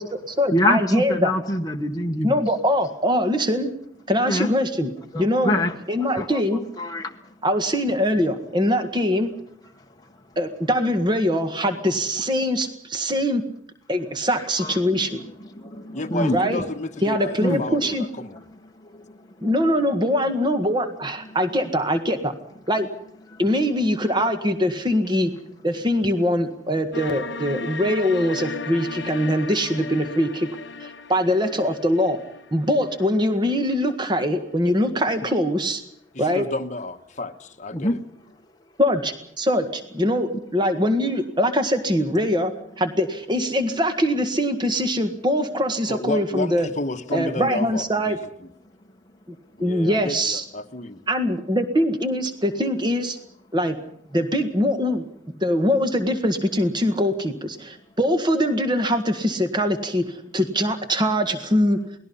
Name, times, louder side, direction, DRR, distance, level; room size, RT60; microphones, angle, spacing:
voice 1, 0.0-1.3 2.2-3.7 4.1-5.6 5.9-6.6 7.4-9.3 10.3-13.4 13.9-15.2 16.3-16.6 17.0-18.0 19.4-22.3 22.7-22.9 23.4-25.3 25.6-30.5 30.8-32.2 32.5-35.8 36.2-36.5 38.8-42.5 42.8-46.7 47.1-48.2 49.3-50.4 51.1-53.2 53.5-53.8 54.1-55.0 55.4-61.8, equal, 20° right, 8 dB, 1.7 m, -22 dB
voice 2, 0.5-2.4 4.2-4.5 5.1-6.4 6.8-7.2 14.6-14.9 15.5-16.5 17.4-17.6 18.8-19.1 19.4-19.5 21.2-21.4 37.7-37.9, left 1 dB, 20° left, 2 dB, 1.0 m, -25 dB
voice 3, 15.9-18.5 36.1-38.0 45.9-48.2 49.6-51.0, left 2 dB, 35° left, 6 dB, 1.2 m, -31 dB
sound 1, 26.9-33.9, left 4 dB, 60° left, 0.9 m, -36 dB
28.5 x 19.5 x 5.6 m, 0.69 s
head